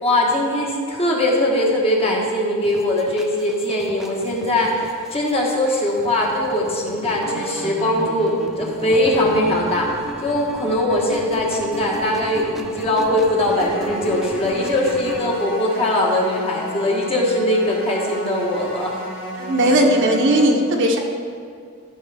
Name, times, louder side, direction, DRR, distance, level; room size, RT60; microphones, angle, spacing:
voice 1, 0.0-9.9 10.2-19.0, left 1 dB, 25° left, -2 dB, 1.4 m, -21 dB
sound 1, 2.6-15.3, equal, ahead, 0.6 m, -35 dB
sound 2, 13.4-20.4, equal, 60° left, 1.5 m, -33 dB
voice 2, 19.4-21.0, right 1 dB, 55° right, 1 dB, 1.0 m, -17 dB
13.5 x 6.3 x 3.5 m, 2.2 s
head